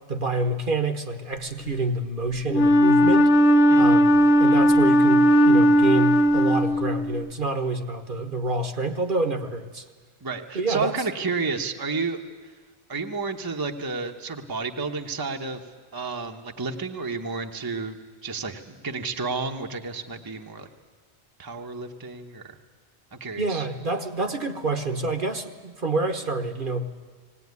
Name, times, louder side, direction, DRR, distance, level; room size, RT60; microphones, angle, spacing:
voice 1, 0.1-3.3 3.7-9.8 10.5-11.0 23.4-26.9, right 2 dB, 50° right, 6 dB, 1.3 m, -27 dB
Wind instrument woodwind instrument, 2.5-7.3, equal, 75° left, 1.1 m, -17 dB
voice 2, 10.2-12.2 12.9-15.6 15.9-18.0 18.2-20.7 21.4-22.6 23.1-23.7, right 4 dB, 20° right, 4 dB, 1.0 m, -31 dB
19.5 x 18.5 x 9.5 m, 1.5 s
omnidirectional pair, 1.2 m